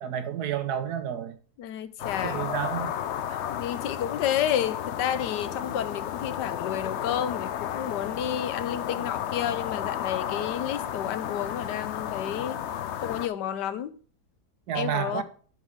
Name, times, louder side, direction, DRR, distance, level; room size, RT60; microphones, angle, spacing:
voice 1, 0.0-1.4 2.2-2.9 3.3-3.4 14.7-15.2, right 9 dB, 70° right, 1.4 m, -30 dB
voice 2, 1.6-2.5 3.5-12.6 13.0-14.0 14.7-15.2, left 10 dB, 85° left, 1.4 m, -31 dB
sound 1, 2.0-13.3, left 10 dB, 65° left, 0.7 m, -33 dB
8.8 x 5.9 x 4.9 m
omnidirectional pair, 1.8 m